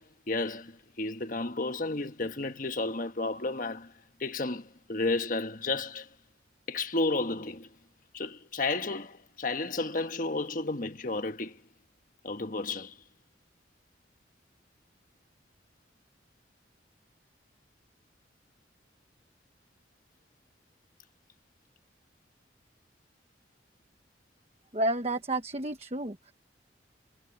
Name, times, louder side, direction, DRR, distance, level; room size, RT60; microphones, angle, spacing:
voice 1, 0.0-3.9 4.2-6.1 6.7-7.7 8.1-11.6 12.2-13.0, left 3 dB, 45° left, 1.4 m, -32 dB
voice 2, 24.7-26.3, right 1 dB, 35° right, 1.2 m, -31 dB
head